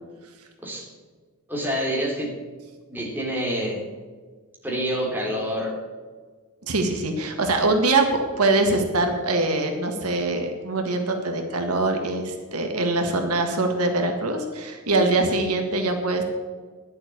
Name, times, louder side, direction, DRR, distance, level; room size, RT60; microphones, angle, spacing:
voice 1, 1.5-2.3 2.9-3.8 4.6-5.8, equal, 10° right, -3 dB, 3.6 m, -27 dB
voice 2, 6.7-16.2, right 2 dB, 80° right, 4 dB, 1.8 m, -23 dB
11.5 x 7.6 x 8.5 m, 1.5 s
head